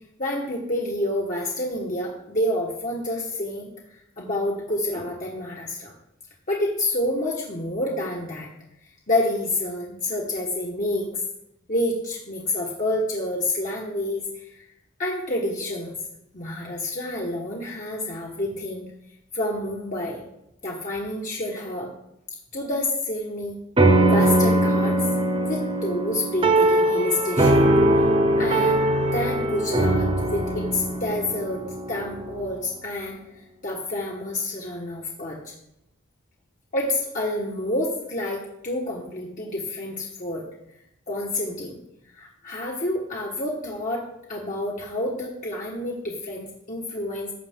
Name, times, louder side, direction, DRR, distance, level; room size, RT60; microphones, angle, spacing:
voice 1, 0.2-3.7 4.2-5.9 6.5-8.5 9.1-11.2 11.7-14.7 15.0-15.9 16.3-18.8 19.3-20.2 20.6-21.9 22.5-23.6 24.0-25.1 25.5-28.1 28.4-28.8 29.1-31.6 31.9-33.2 33.6-35.5 36.7-40.4 41.1-41.8 42.1-47.3, left 1 dB, 40° left, -3 dB, 1.4 m, -28 dB
sound 1, 23.8-32.5, right 1 dB, 25° right, 1.0 m, -21 dB
15.0 x 6.5 x 3.7 m, 0.82 s
head